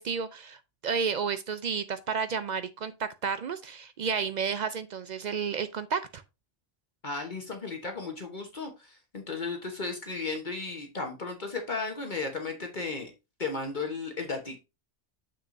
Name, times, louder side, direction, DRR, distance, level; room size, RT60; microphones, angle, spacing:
voice 1, 0.0-6.2, right 6 dB, 65° right, 0.4 m, -31 dB
voice 2, 7.0-13.1 13.4-14.6, left 3 dB, 40° left, 1.1 m, -35 dB
7.1 x 6.0 x 2.6 m
omnidirectional pair, 1.2 m